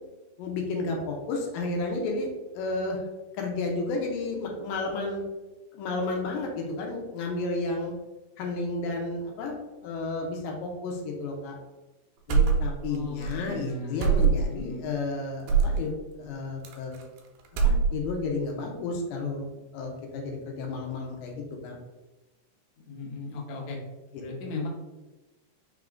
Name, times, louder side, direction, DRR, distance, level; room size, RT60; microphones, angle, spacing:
voice 1, 0.4-3.0 3.4-5.2 5.7-7.9 8.4-11.6 12.3-15.9 16.2-17.0 17.6-19.4 19.7-21.8 24.5-24.6, left 3 dB, 85° left, 0 dB, 2.4 m, -32 dB
sound 1, 12.3-13.0 13.2-13.4 14.0-14.6 15.5-15.8 16.6-17.2 17.5-18.2, right 6 dB, 85° right, 2.4 m, -23 dB
voice 2, 12.9-14.9 22.9-23.8 24.2-24.7, left 2 dB, 70° left, -1 dB, 1.8 m, -37 dB
5.7 x 2.5 x 3.5 m, 1.1 s
omnidirectional pair, 4.1 m